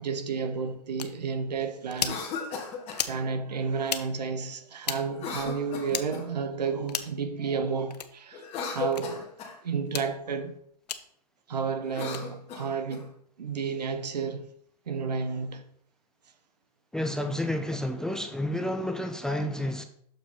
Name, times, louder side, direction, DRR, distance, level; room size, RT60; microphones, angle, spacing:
voice 1, 0.0-2.2 3.1-9.3 9.6-10.6 11.5-13.1 13.4-14.5 14.9-15.6, right 5 dB, 85° right, 1.0 m, -31 dB
sound 1, 1.0-1.1 1.9-2.2 2.9-3.2 3.8-4.0 4.8-5.0 5.9-6.1 6.9-7.2 7.9-8.1 8.9-9.0 9.9-10.1 10.9-11.0 12.0-12.2, left 8 dB, 80° left, 0.7 m, -32 dB
Cough, 1.9-3.0 5.1-6.4 8.3-9.6 11.8-13.0, left 5 dB, 30° left, 1.5 m, -36 dB
voice 2, 16.9-19.8, left 1 dB, 5° left, 0.4 m, -30 dB
6.6 x 4.6 x 4.3 m
hypercardioid pair, 130°, 20 cm